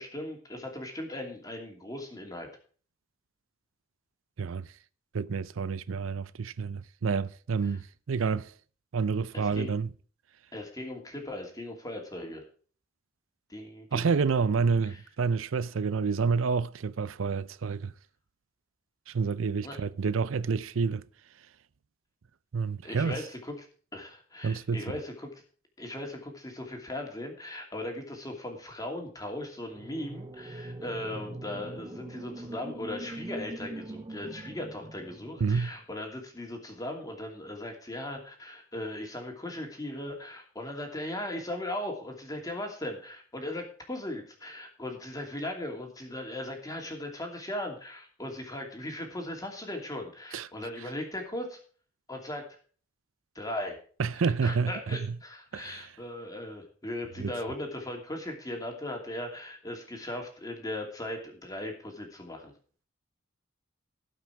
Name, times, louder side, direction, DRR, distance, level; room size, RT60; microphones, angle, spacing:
voice 1, 0.0-2.5 7.7-7.8 9.3-9.7 10.5-12.4 13.5-14.5 14.9-15.0 19.6-19.8 22.8-23.7 23.9-25.4 25.8-51.6 52.1-52.4 53.3-53.8 54.2-62.5, left 1 dB, 20° left, 2.8 m, -38 dB
voice 2, 4.4-4.7 5.1-8.5 8.9-9.9 13.9-17.9 19.1-21.0 22.5-23.2 24.4-25.0 35.4-35.7 50.3-50.5 54.0-55.2 55.5-55.9 57.2-57.3, right 5 dB, 80° right, 0.5 m, -29 dB
sound 1, 29.7-35.8, right 1 dB, 25° right, 0.4 m, -42 dB
17.5 x 5.9 x 4.7 m
head